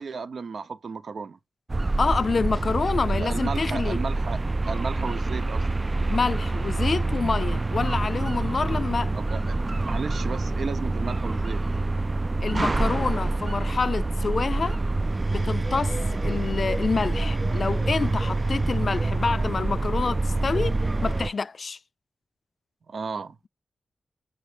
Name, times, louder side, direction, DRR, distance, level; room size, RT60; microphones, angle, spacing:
voice 1, 0.0-1.4 3.1-4.4 4.7-5.7 9.1-9.6 9.8-11.6 22.9-23.5, right 5 dB, 70° right, 0.9 m, -34 dB
sound 1, 1.7-21.3, right 2 dB, 30° right, 0.3 m, -26 dB
voice 2, 2.0-4.0 6.1-9.1 12.4-14.8 15.3-21.8, left 4 dB, 55° left, 0.4 m, -27 dB
5.7 x 5.5 x 3.4 m
cardioid pair, 70°, 0 cm